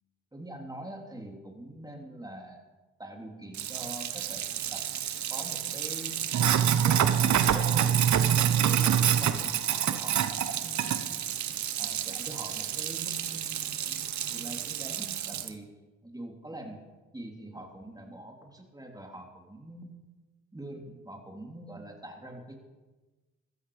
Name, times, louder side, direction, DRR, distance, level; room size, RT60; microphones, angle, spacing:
voice 1, 0.3-2.6 3.0-4.8 5.3-6.2 6.8-11.4 11.8-14.0 14.3-15.7 16.0-16.8 17.1-20.0 20.5-22.6, right 1 dB, 10° right, 2 dB, 3.3 m, -44 dB
Sink (filling or washing), 3.5-15.5, right 9 dB, 65° right, 1.0 m, -27 dB
15.0 x 13.5 x 5.0 m, 1.2 s
cardioid pair, 65°, 31 cm